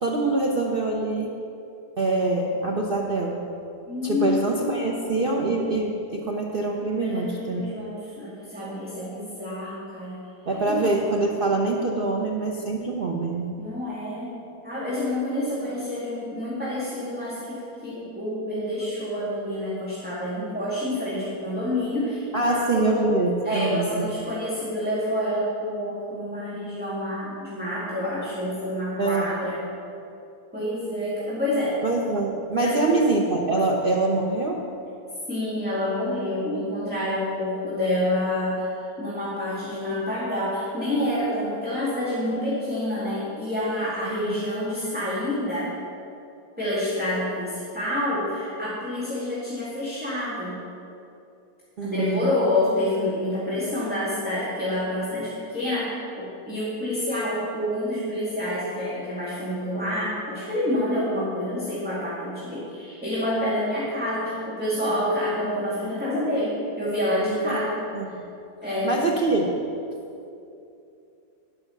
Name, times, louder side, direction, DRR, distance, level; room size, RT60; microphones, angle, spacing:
voice 1, 0.0-1.3 2.0-3.4 4.0-7.6 10.5-13.5 22.3-24.0 29.0-29.3 31.8-34.6 44.0-44.3 51.8-52.3 67.5-67.6 67.9-68.3 68.8-69.6, right 2 dB, 80° right, -1 dB, 0.5 m, -24 dB
voice 2, 3.9-4.5 4.8-4.9 6.9-10.2 10.6-10.9 13.6-14.4 14.6-23.1 23.4-29.6 30.5-31.8 32.6-33.1 35.3-45.7 46.6-50.6 51.8-68.2 68.6-68.9, left 1 dB, 5° right, -10 dB, 1.9 m, -28 dB
11.5 x 5.6 x 7.1 m, 2.7 s
omnidirectional pair, 2.1 m